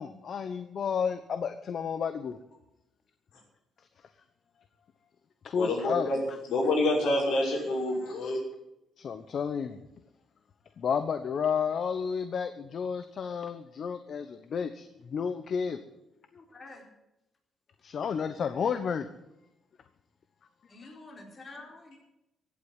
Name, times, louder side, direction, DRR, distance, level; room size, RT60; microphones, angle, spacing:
voice 1, 0.0-2.4 5.4-6.1 8.0-8.1 9.0-9.8 10.8-15.8 17.8-19.1 20.8-20.9, left 6 dB, 55° left, 10 dB, 1.0 m, -31 dB
voice 2, 5.6-6.2 6.5-8.4, left 2 dB, 85° left, -1 dB, 5.9 m, -27 dB
voice 3, 16.3-16.9 20.7-22.0, left 2 dB, 40° left, 1 dB, 4.4 m, -48 dB
15.5 x 8.8 x 9.3 m, 0.88 s
cardioid pair, 90°, 0 cm